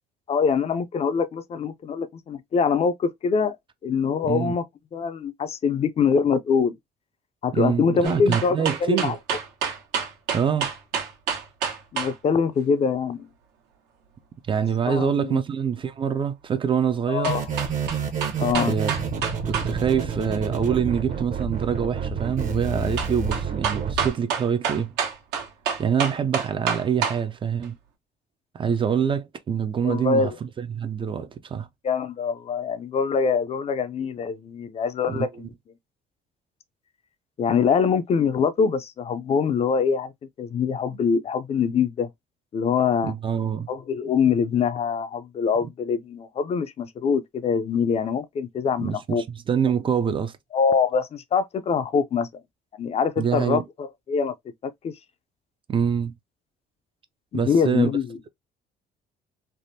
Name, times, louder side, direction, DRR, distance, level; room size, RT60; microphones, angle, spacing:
voice 1, 0.3-3.6 3.8-4.6 4.9-6.7 7.4-9.2 11.9-13.3 14.9-15.4 17.1-17.4 18.4-18.8 29.8-30.3 31.8-35.5 37.4-40.1 40.4-42.1 42.5-43.1 43.7-49.2 50.5-52.3 52.8-54.3 54.8-54.9 57.3-58.2, left 6 dB, 40° left, 0.4 m, -24 dB
voice 2, 7.5-9.1 10.3-10.7 14.5-17.3 18.4-18.9 19.5-24.9 25.8-27.8 28.5-31.7 35.1-35.5 40.9-41.0 43.0-43.7 48.8-50.4 53.2-53.6 55.7-56.1 57.3-57.9, right 7 dB, 30° right, 0.4 m, -25 dB
sound 1, 8.0-12.1 17.2-19.7 20.0-20.1 23.0-27.2 27.6-27.7, right 7 dB, 90° right, 1.1 m, -28 dB
sound 2, 17.2-24.1, right 6 dB, 50° right, 0.8 m, -29 dB
3.3 x 2.1 x 2.6 m
cardioid pair, 110°, 17 cm